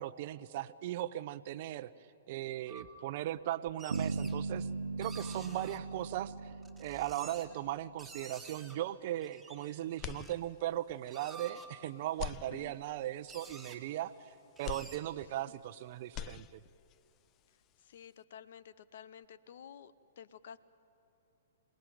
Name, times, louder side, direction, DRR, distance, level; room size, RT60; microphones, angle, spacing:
voice 1, 0.0-1.9 2.3-4.7 5.0-6.5 6.8-14.1 14.6-16.6, right 13 dB, 45° right, 15 dB, 0.7 m, -38 dB
sound 1, 2.7-2.9 3.7-4.4 5.0-5.8 6.5-7.6 8.0-8.8 9.2-10.3 10.9-11.7 12.7-12.8 13.0-13.1 13.3-13.8 14.6-15.0, right 3 dB, ahead, 2.4 m, -51 dB
sound 2, 3.9-7.9, right 4 dB, 75° right, 1.1 m, -38 dB
sound 3, 10.0-10.9 11.3-11.4 12.1-13.1 14.6-15.7 16.0-17.0, left 12 dB, 30° left, 0.4 m, -44 dB
voice 2, 17.8-20.6, left 8 dB, 60° left, 16 dB, 0.8 m, -52 dB
26.5 x 18.5 x 9.3 m, 3.0 s
figure-of-eight pair, 115°, 0 cm